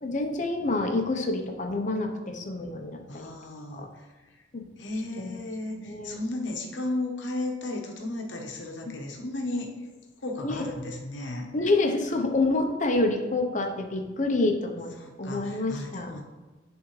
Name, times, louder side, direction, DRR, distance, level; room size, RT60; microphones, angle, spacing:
voice 1, 0.0-3.3 3.7-3.9 4.5-4.7 5.2-5.4 5.8-6.2 10.4-10.6 11.5-14.9 15.2-16.1, left 2 dB, 45° left, 4 dB, 0.8 m, -27 dB
voice 2, 3.1-4.1 4.8-9.7 10.2-11.5 15.0-16.2, left 2 dB, 80° left, 2 dB, 1.0 m, -34 dB
10.0 x 3.6 x 3.2 m, 1.2 s
head